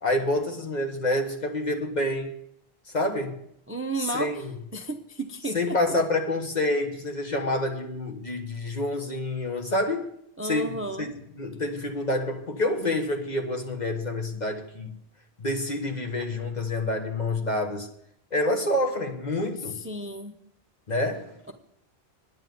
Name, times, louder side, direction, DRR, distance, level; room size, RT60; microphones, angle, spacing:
voice 1, 0.0-2.3 2.9-3.4 4.0-4.5 5.5-10.1 10.4-11.1 11.3-14.9 15.4-17.9 18.3-19.8 20.9-21.5, left 1 dB, 45° left, 3 dB, 1.5 m, -28 dB
voice 2, 3.7-4.4 4.7-5.8 10.4-11.1 19.8-20.4, right 2 dB, 15° right, 6 dB, 0.7 m, -32 dB
9.9 x 7.3 x 9.4 m, 0.74 s
omnidirectional pair, 1.1 m